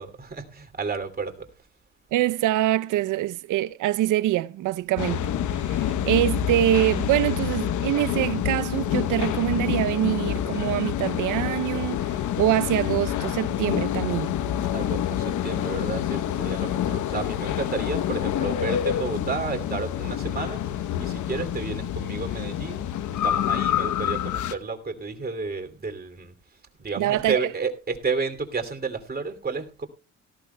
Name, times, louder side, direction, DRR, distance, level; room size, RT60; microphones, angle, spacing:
voice 1, 0.0-1.5 14.7-20.6 21.0-22.9 23.2-26.3 26.8-29.9, right 4 dB, 30° right, 2.8 m, -31 dB
voice 2, 2.1-5.3 5.6-12.0 12.4-14.3 27.0-27.5, right 14 dB, 85° right, 0.7 m, -24 dB
sound 1, 5.0-24.5, left 10 dB, 75° left, 1.0 m, -27 dB
17.5 x 14.5 x 2.3 m
cardioid pair, 90°, 30 cm